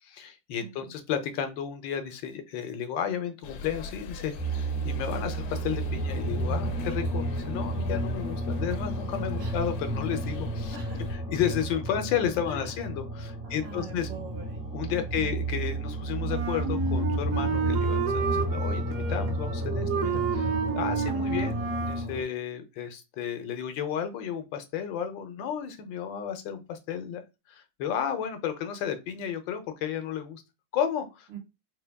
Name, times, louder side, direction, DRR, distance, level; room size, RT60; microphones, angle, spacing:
voice 1, 0.0-10.8 11.3-14.1 14.7-27.2 27.5-30.4 30.7-31.3, left 8 dB, 90° left, 8 dB, 1.4 m, -33 dB
voice 2, 0.6-0.9 9.4-9.6 10.7-11.1 11.9-12.0 12.4-12.8 13.4-14.6 14.9-15.3 19.7-20.0 31.3-31.4, right 6 dB, 85° right, 1 dB, 2.0 m, -44 dB
sound 1, 3.4-11.2, left 4 dB, 70° left, 1.1 m, -43 dB
sound 2, 4.4-22.2, right 1 dB, 10° right, 0.5 m, -31 dB
Wind instrument woodwind instrument, 16.3-22.1, right 6 dB, 65° right, 0.8 m, -30 dB
4.0 x 2.2 x 3.4 m, 0.26 s
omnidirectional pair, 2.0 m